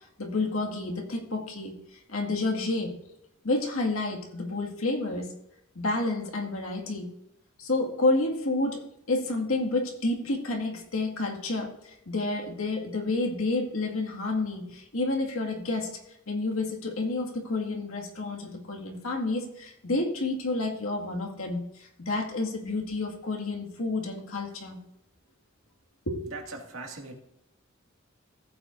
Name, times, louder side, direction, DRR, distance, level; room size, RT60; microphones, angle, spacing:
voice 1, 0.2-1.7 2.1-2.9 3.4-5.3 5.8-7.1 7.6-15.9 16.3-24.8 26.1-26.2, left 2 dB, 80° left, 1 dB, 2.0 m, -29 dB
voice 2, 26.2-27.2, right 3 dB, 75° right, 1 dB, 2.1 m, -40 dB
15.5 x 8.6 x 2.6 m, 0.85 s
head